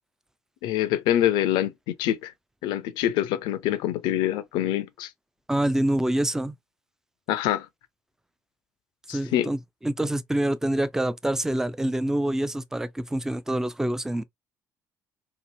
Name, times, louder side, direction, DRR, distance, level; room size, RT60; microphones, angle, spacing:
voice 1, 0.6-2.3 2.6-5.1 7.3-7.7 9.1-9.5, left 12 dB, 60° left, 0.4 m, -25 dB
voice 2, 5.5-6.6 9.1-14.2, right 1 dB, 5° right, 0.3 m, -26 dB
2.8 x 2.5 x 2.4 m
figure-of-eight pair, 55°, 9 cm